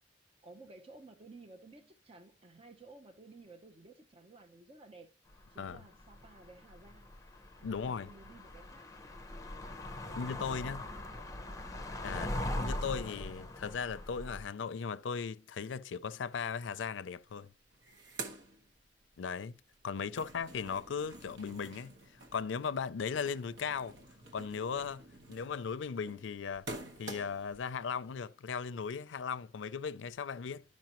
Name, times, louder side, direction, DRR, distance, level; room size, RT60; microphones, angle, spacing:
voice 1, 0.4-5.1 5.5-7.2 7.6-8.9 10.0-11.7 20.0-20.3, right 3 dB, 30° right, 0.6 m, -55 dB
sound 1, 5.4-5.7 6.0-14.5, left 1 dB, 15° left, 0.7 m, -41 dB
voice 2, 7.6-8.1 10.2-10.8 12.0-17.5 19.2-19.6 19.8-21.9 22.3-24.0 24.3-25.0 25.3-26.7 27.0-30.6, left 6 dB, 90° left, 0.4 m, -37 dB
sound 2, 17.2-17.3 17.5-19.3 19.7-27.6, right 2 dB, 80° right, 1.2 m, -48 dB
11.5 x 5.3 x 2.9 m
head